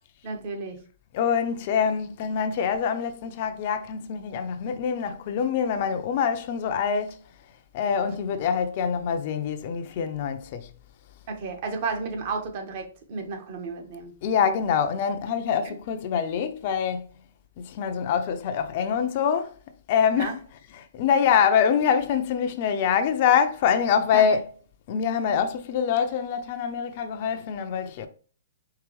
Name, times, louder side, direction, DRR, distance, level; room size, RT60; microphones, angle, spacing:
voice 1, 0.2-0.8 11.3-14.1 15.6-15.7 20.2-20.3 24.1-24.2, right 4 dB, 45° right, 1.3 m, -32 dB
voice 2, 1.1-7.2 7.7-10.7 14.2-17.1 17.6-19.6 19.9-24.5 24.9-28.1, left 7 dB, 45° left, 0.6 m, -25 dB
4.8 x 3.3 x 3.1 m
hypercardioid pair, 140°, 0 cm